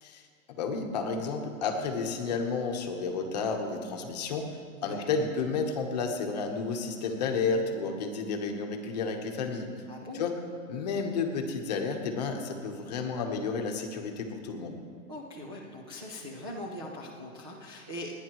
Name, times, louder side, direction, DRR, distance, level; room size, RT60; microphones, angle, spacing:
voice 1, 0.0-4.5 4.8-9.7 10.1-10.3 10.7-14.8, left 4 dB, 30° left, 3 dB, 1.1 m, -31 dB
voice 2, 9.9-10.3 15.1-18.1, left 1 dB, 20° right, -5 dB, 0.5 m, -41 dB
30.0 x 10.0 x 3.1 m, 2.2 s
hypercardioid pair, 180°, 43 cm